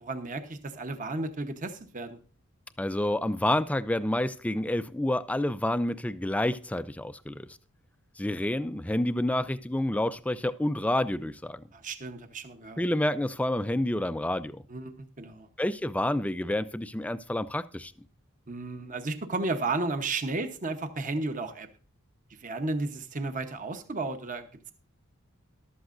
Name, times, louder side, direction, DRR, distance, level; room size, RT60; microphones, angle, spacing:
voice 1, 0.0-2.2 11.7-12.8 14.7-15.5 18.5-21.7 22.4-24.7, right 3 dB, 35° right, 1.0 m, -33 dB
voice 2, 2.8-7.5 8.2-11.6 12.8-14.6 15.6-17.9, left 1 dB, 5° left, 0.4 m, -29 dB
14.0 x 12.0 x 2.6 m
head